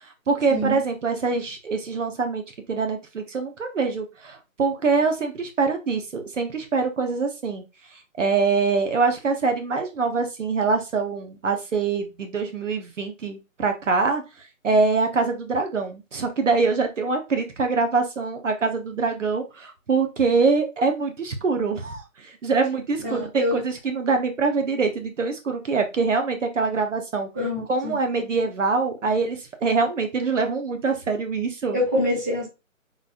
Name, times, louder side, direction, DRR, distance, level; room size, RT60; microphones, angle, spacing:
voice 1, 0.3-2.4 2.7-7.6 7.9-27.3 27.7-31.8, right 4 dB, 65° right, 5 dB, 0.8 m, -24 dB
voice 2, 23.0-23.6 27.3-27.9 31.7-32.4, left 1 dB, 15° right, -7 dB, 0.9 m, -25 dB
3.9 x 2.9 x 2.4 m, 0.26 s
hypercardioid pair, 170°, 40 cm